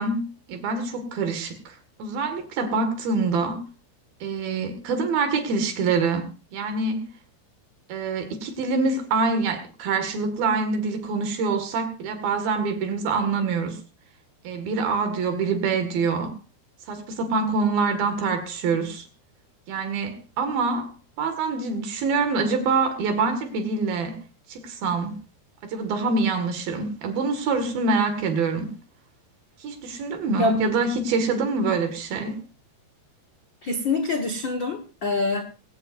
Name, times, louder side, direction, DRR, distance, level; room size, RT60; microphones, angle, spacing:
voice 1, 0.0-3.7 4.2-7.0 7.9-13.8 14.4-16.3 16.9-19.1 19.7-20.9 21.2-24.2 24.5-25.2 25.6-28.7 29.6-32.4, right 4 dB, 65° right, 3.7 m, -25 dB
voice 2, 33.6-35.4, left 2 dB, 85° left, 1.0 m, -25 dB
20.5 x 17.5 x 2.6 m
omnidirectional pair, 4.8 m